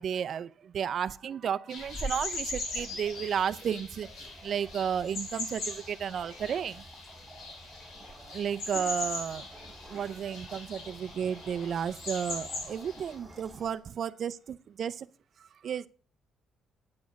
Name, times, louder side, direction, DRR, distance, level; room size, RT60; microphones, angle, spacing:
voice 1, 0.0-4.1 4.4-6.8 8.3-15.1 15.4-15.9, right 8 dB, 40° right, 0.5 m, -33 dB
sound 1, 1.7-13.2, left 2 dB, 60° left, 3.5 m, -40 dB
sound 2, 1.8-13.8, right 1 dB, ahead, 5.1 m, -48 dB
9.6 x 9.3 x 5.1 m
cardioid pair, 170°, 0 cm